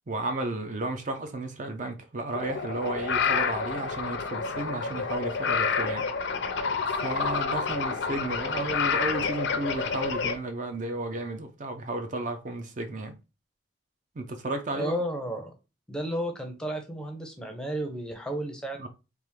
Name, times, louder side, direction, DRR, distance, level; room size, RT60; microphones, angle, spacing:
voice 1, 0.1-6.0 7.0-13.1 14.2-15.0 18.8-18.9, right 2 dB, 40° right, 0.4 m, -33 dB
sound 1, 2.3-10.4, left 5 dB, 65° left, 0.5 m, -29 dB
voice 2, 14.7-15.5 15.9-18.8, equal, 5° left, 0.6 m, -32 dB
3.4 x 2.5 x 3.1 m
head